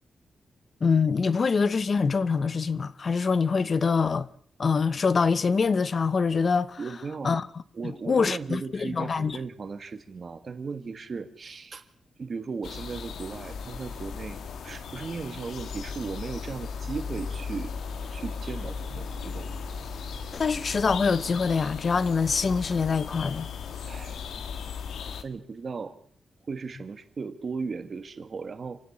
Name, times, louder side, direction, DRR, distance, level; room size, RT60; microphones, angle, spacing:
voice 1, 0.8-4.3 4.6-6.8 7.2-7.5 7.8-9.4 20.3-23.5, left 5 dB, 35° left, 0.8 m, -24 dB
voice 2, 6.8-7.4 7.7-11.8 12.2-14.4 14.6-17.8 18.1-19.5 23.8-24.2 25.2-26.0 26.5-28.8, right 4 dB, 40° right, 1.8 m, -36 dB
sound 1, 12.6-25.2, left 5 dB, 85° left, 2.0 m, -37 dB
28.0 x 15.5 x 7.3 m
wide cardioid pair, 165°, 0 cm